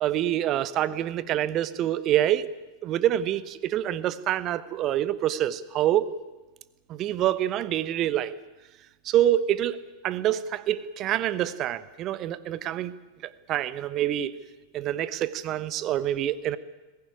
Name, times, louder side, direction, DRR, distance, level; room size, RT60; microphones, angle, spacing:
voice 1, 0.0-2.5 2.8-6.1 6.9-8.3 9.0-9.8 10.0-12.9 13.2-14.3 14.7-16.6, right 12 dB, 35° right, 17 dB, 1.0 m, -26 dB
21.0 x 15.5 x 10.0 m, 1.2 s
figure-of-eight pair, 90°, 0 cm